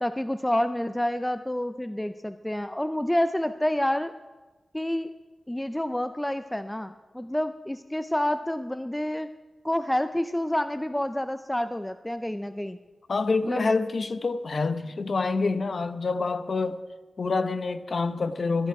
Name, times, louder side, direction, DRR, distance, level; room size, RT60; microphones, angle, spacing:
voice 1, 0.0-4.1 4.7-5.1 5.5-9.3 9.6-12.8 13.4-13.7, left 1 dB, 10° left, 0.4 m, -28 dB
voice 2, 13.1-16.8 17.2-18.7, left 4 dB, 60° left, 0.8 m, -27 dB
21.5 x 10.5 x 4.7 m
wide cardioid pair, 90°, 0 cm